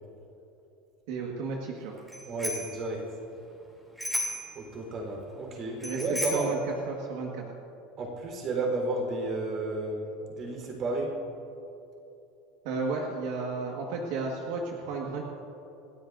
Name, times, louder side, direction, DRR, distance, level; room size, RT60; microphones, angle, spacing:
voice 1, 1.1-1.9 5.8-6.6 6.9-7.4 12.6-15.2, right 4 dB, 65° right, -1 dB, 1.7 m, -33 dB
Bicycle bell, 2.1-2.8 4.0-4.5 5.8-6.6, left 1 dB, ahead, 3.1 m, -33 dB
voice 2, 2.3-3.0 4.5-6.5 8.0-11.1, right 2 dB, 35° right, 0 dB, 4.1 m, -32 dB
29.0 x 13.5 x 2.7 m, 2.9 s
supercardioid pair, 160°, 0 cm